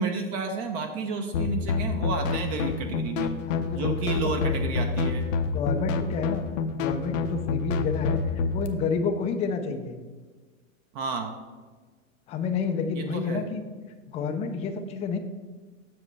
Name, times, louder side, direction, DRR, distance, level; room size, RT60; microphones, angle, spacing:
voice 1, 0.0-3.3 3.7-5.3 10.9-11.3 12.9-13.4, right 4 dB, 45° right, 5 dB, 0.8 m, -31 dB
sound 1, 1.3-8.7, left 4 dB, 70° left, 0.8 m, -28 dB
voice 2, 3.5-3.9 4.2-4.3 5.4-6.4 6.7-8.2 8.5-10.0 12.3-13.6 14.1-15.2, left 5 dB, 15° left, 6 dB, 0.4 m, -29 dB
7.4 x 6.4 x 3.3 m, 1.4 s
hypercardioid pair, 130°, 41 cm